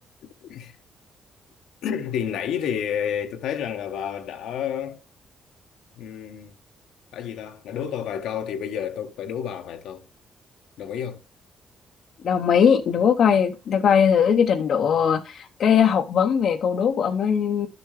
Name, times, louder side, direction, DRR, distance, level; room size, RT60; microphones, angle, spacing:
voice 1, 0.4-0.7 1.8-5.0 6.0-6.5 7.1-10.1 10.8-11.2, left 8 dB, 85° left, 1.1 m, -30 dB
voice 2, 12.2-17.7, left 7 dB, 65° left, 0.8 m, -20 dB
11.0 x 6.9 x 3.2 m
cardioid pair, 90°, 0 cm